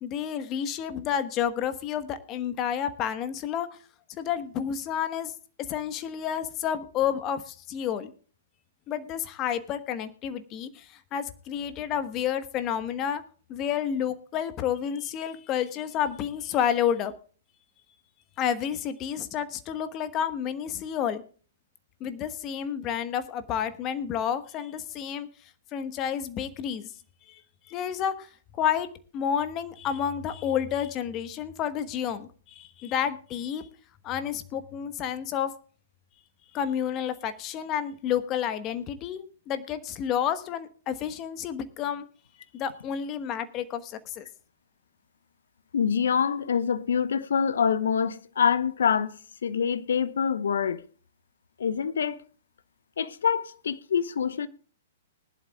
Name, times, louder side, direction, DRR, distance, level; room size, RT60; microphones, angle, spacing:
voice 1, 0.0-3.7 4.2-5.3 5.7-8.1 8.9-13.2 13.5-17.1 18.4-21.2 22.0-25.3 25.7-26.9 27.3-27.4 27.7-28.3 28.6-28.9 29.1-33.7 34.0-35.5 36.5-42.0 42.5-44.3, left 9 dB, 30° left, 1.2 m, -30 dB
voice 2, 45.7-49.1 49.4-50.8 51.6-52.2 53.0-54.5, left 7 dB, 70° left, 0.9 m, -25 dB
20.0 x 11.0 x 2.3 m
hypercardioid pair, 115°, 0 cm